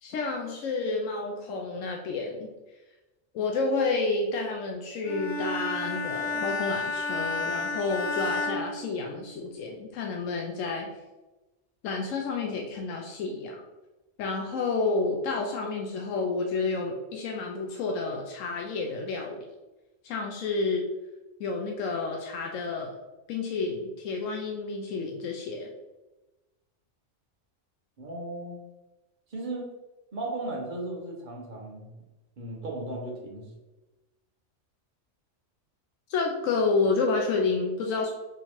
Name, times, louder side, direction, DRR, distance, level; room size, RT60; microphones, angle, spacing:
voice 1, 0.0-2.5 3.3-10.9 11.8-13.6 14.2-19.4 20.0-20.9 21.4-23.0 23.3-25.7 36.1-38.1, left 3 dB, 90° left, 1 dB, 1.0 m, -30 dB
Bowed string instrument, 5.0-9.5, left 2 dB, 55° left, 0.5 m, -32 dB
voice 2, 28.0-28.6 29.3-29.7 30.1-31.9 32.4-33.5, right 2 dB, 45° right, -1 dB, 1.1 m, -36 dB
3.7 x 3.0 x 4.3 m, 1.1 s
omnidirectional pair, 1.3 m